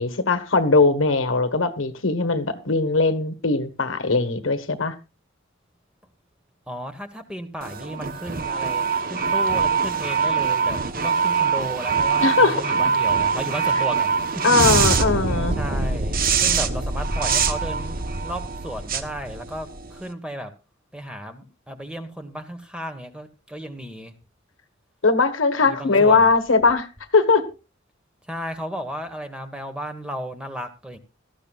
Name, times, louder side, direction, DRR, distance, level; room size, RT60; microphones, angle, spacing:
voice 1, 0.0-4.9 12.2-12.7 14.4-15.6 25.0-26.9 27.1-27.4, left 3 dB, 75° left, 1.5 m, -20 dB
voice 2, 6.7-14.7 15.6-20.5 20.9-24.1 25.6-26.3 28.3-31.0, equal, 5° right, 1.4 m, -34 dB
sound 1, 7.6-20.0, right 5 dB, 45° right, 1.0 m, -23 dB
18.0 x 14.0 x 2.4 m
head